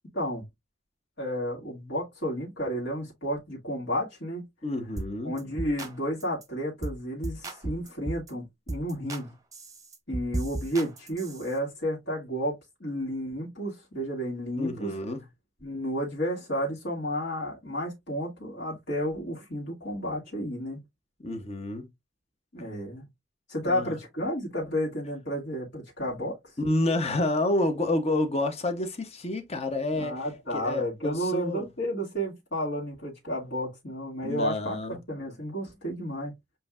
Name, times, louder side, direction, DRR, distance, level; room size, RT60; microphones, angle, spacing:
voice 1, 0.1-0.5 1.2-4.4 5.2-9.3 10.1-14.9 15.6-20.8 22.5-23.1 23.5-26.4 29.9-34.8 35.1-36.3, equal, 60° left, 2.1 m, -32 dB
voice 2, 4.6-5.3 14.6-15.2 21.2-21.9 23.7-23.9 26.6-30.1 30.5-31.6 34.2-35.0, left 2 dB, 30° left, 0.9 m, -29 dB
sound 1, 5.0-5.1 5.4-5.9 6.2-6.4 6.8-7.0 7.2-8.3 8.7-9.2 9.5-11.5, right 2 dB, 15° right, 0.8 m, -35 dB
7.6 x 2.7 x 2.4 m
head